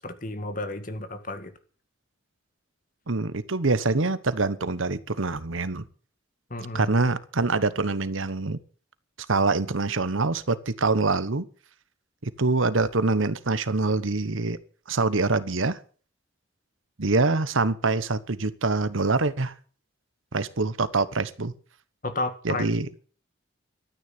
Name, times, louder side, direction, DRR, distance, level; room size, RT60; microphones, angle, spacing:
voice 1, 0.0-1.5 6.5-6.9 22.0-22.6, left 2 dB, 40° left, 1.9 m, -32 dB
voice 2, 3.1-5.9 6.7-8.6 9.3-11.4 12.2-14.6 14.9-15.8 17.0-19.5 20.3-21.5 22.4-22.9, right 3 dB, 75° right, 1.1 m, -25 dB
13.5 x 9.6 x 8.7 m
head